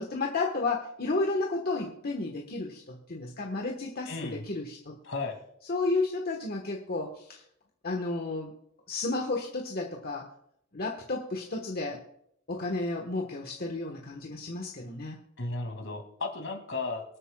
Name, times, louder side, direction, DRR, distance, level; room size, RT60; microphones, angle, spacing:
voice 1, 0.0-5.0 5.7-7.4 7.8-8.5 8.9-10.3 10.7-12.0 12.5-15.2, left 3 dB, 50° left, 1 dB, 1.3 m, -32 dB
voice 2, 4.1-4.4 5.0-5.4 15.4-17.0, left 3 dB, 65° left, 4 dB, 2.5 m, -34 dB
24.5 x 8.7 x 2.3 m, 0.73 s
head